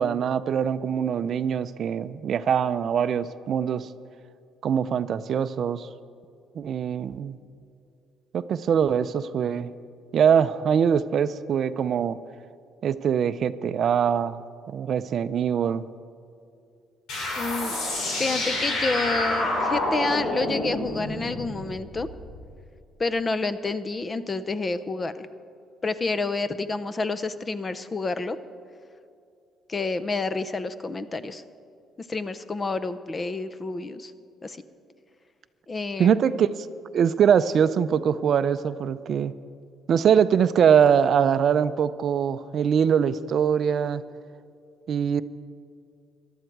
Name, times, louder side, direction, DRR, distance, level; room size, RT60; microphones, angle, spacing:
voice 1, 0.0-3.9 4.6-5.9 6.6-7.4 8.3-9.7 10.1-12.2 12.8-15.8 36.0-36.7 36.9-39.3 39.9-44.0 44.9-45.2, right 8 dB, 55° right, 14 dB, 0.4 m, -23 dB
sound 1, 17.1-22.4, left 1 dB, 75° left, 3.7 m, -28 dB
voice 2, 17.4-17.8 18.2-22.1 23.0-25.3 25.8-28.4 29.7-31.4 32.0-34.1 34.4-34.6 35.7-36.2, left 3 dB, 25° left, 13 dB, 0.6 m, -29 dB
18.0 x 12.5 x 4.7 m, 2.5 s
cardioid pair, 110°, 0 cm